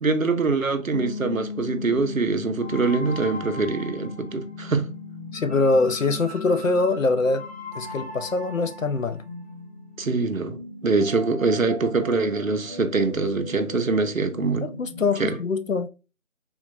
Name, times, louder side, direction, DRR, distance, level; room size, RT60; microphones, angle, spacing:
voice 1, 0.0-4.9 10.0-14.7 15.2-15.4, right 3 dB, 75° right, 0.7 m, -24 dB
sound 1, 0.9-10.6, left 6 dB, 85° left, 1.0 m, -40 dB
sound 2, 2.6-15.3, left 1 dB, 50° left, 1.4 m, -40 dB
voice 2, 5.3-7.4 7.8-9.2 14.8-15.9, left 3 dB, 70° left, 0.5 m, -23 dB
3.6 x 2.3 x 2.6 m
figure-of-eight pair, 180°, 41 cm